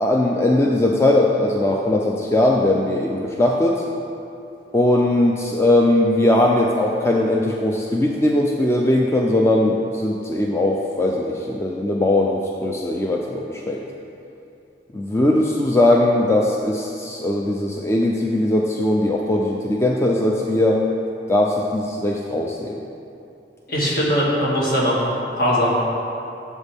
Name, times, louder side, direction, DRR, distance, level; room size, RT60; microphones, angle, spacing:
voice 1, 0.0-3.8 4.7-13.8 14.9-20.8 21.3-22.8, left 1 dB, 15° left, -1 dB, 0.4 m, -19 dB
voice 2, 23.7-25.1 25.4-25.8, equal, 55° left, -5 dB, 2.2 m, -20 dB
12.5 x 7.3 x 3.5 m, 2.7 s
head